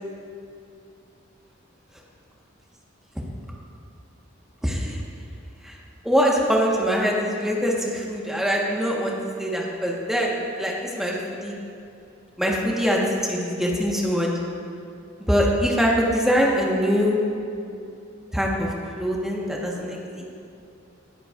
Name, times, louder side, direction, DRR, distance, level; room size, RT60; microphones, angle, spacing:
voice 1, 4.6-5.0 5.6-5.7 6.0-9.1 9.4-11.5 12.4-14.3 15.3-17.2 18.3-20.2, equal, ahead, -3 dB, 1.4 m, -23 dB
19.0 x 8.1 x 2.5 m, 2.6 s
head